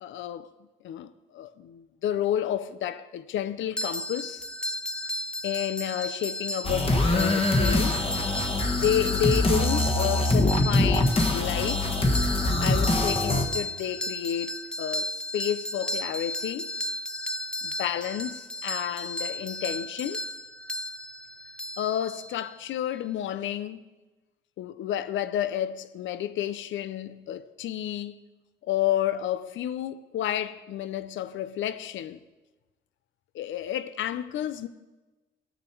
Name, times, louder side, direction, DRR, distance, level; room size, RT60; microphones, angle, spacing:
voice 1, 0.0-0.5 0.8-4.5 5.4-8.0 8.8-11.9 12.6-16.7 17.6-20.2 21.8-23.8 24.6-28.2 28.6-32.2 33.3-34.7, left 11 dB, 75° left, 0.6 m, -31 dB
sound 1, 3.8-22.5, left 1 dB, 5° left, 0.4 m, -34 dB
sound 2, 6.6-13.5, left 2 dB, 30° left, 1.4 m, -24 dB
18.0 x 6.6 x 4.6 m
cardioid pair, 90°, 20 cm